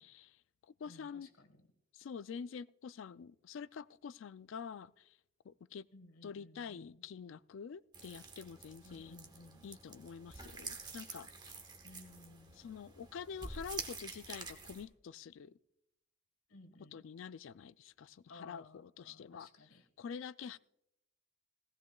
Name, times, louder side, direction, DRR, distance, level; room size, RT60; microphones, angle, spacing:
voice 1, 0.0-1.3 1.9-5.2 5.4-5.9 6.2-9.2 9.6-11.3 12.6-15.5 16.9-19.5 20.0-20.6, left 6 dB, 60° left, 0.3 m, -47 dB
voice 2, 0.9-1.7 5.9-7.0 8.8-9.7 11.8-12.7 16.5-17.0 18.3-19.9, left 2 dB, 80° left, 1.5 m, -58 dB
sound 1, 7.9-14.8, right 4 dB, 20° right, 1.0 m, -48 dB
17.5 x 16.0 x 2.3 m
head